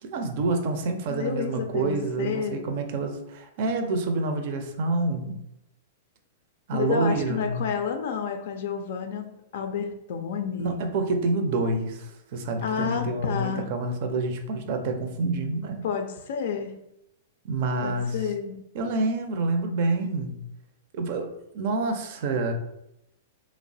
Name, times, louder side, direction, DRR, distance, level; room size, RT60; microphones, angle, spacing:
voice 1, 0.0-5.4 6.7-7.6 10.6-15.8 17.4-18.2 18.7-20.4 20.9-22.5, right 3 dB, 55° right, 5 dB, 0.5 m, -28 dB
voice 2, 1.1-2.6 6.7-10.8 12.6-13.7 15.8-16.8 17.8-18.6, left 7 dB, 65° left, 5 dB, 0.4 m, -30 dB
3.1 x 2.0 x 2.6 m, 0.82 s
hypercardioid pair, 120°, 0 cm